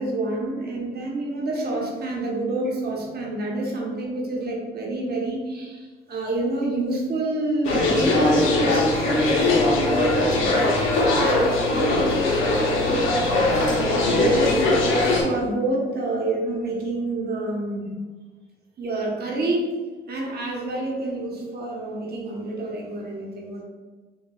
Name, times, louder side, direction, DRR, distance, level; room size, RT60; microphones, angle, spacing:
voice 1, 0.0-10.7 11.2-14.6 15.1-17.9 18.8-19.7 20.1-23.6, right 2 dB, 55° right, -2 dB, 0.8 m, -28 dB
sound 1, 7.6-15.2, left 2 dB, 85° left, 0.7 m, -20 dB
4.7 x 2.3 x 2.3 m, 1.3 s
cardioid pair, 90°, 20 cm